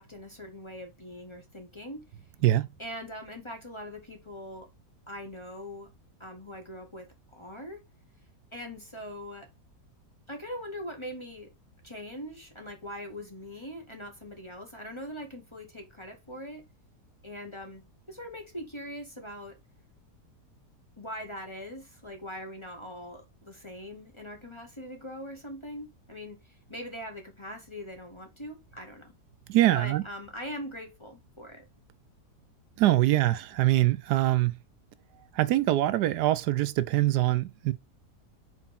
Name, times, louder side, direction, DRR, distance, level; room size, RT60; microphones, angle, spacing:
voice 1, 0.0-2.0 2.8-4.7 5.1-5.9 6.2-7.8 8.5-9.5 10.3-11.5 11.8-16.6 17.2-17.8 18.1-19.6 21.0-26.4 26.7-29.1 29.7-31.7, equal, 20° left, 1.2 m, -41 dB
voice 2, 29.5-30.0 32.8-34.6 35.3-37.7, right 15 dB, 80° right, 1.1 m, -24 dB
4.6 x 4.5 x 5.7 m
omnidirectional pair, 1.8 m